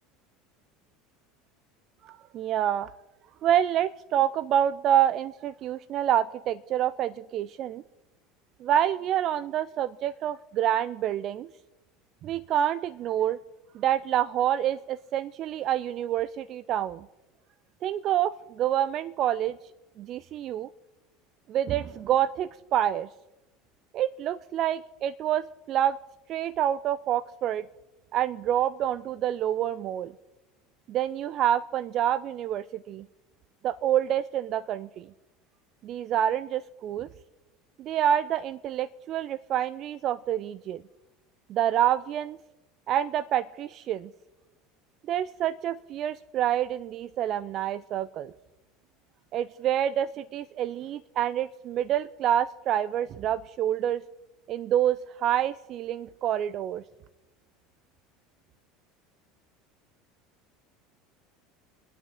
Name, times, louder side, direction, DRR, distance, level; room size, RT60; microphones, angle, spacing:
voice 1, 2.0-2.9 3.4-7.8 8.6-11.5 12.2-13.4 13.7-17.1 17.8-19.6 20.0-20.7 21.5-23.1 23.9-26.0 26.3-27.6 28.1-30.1 30.9-33.1 33.6-35.1 35.8-37.1 37.8-40.8 41.5-42.4 42.9-44.1 45.1-48.3 49.3-54.0 54.5-56.8, right 11 dB, 45° right, 15 dB, 0.4 m, -27 dB
25.5 x 9.1 x 3.6 m, 1.0 s
figure-of-eight pair, 70°, 0 cm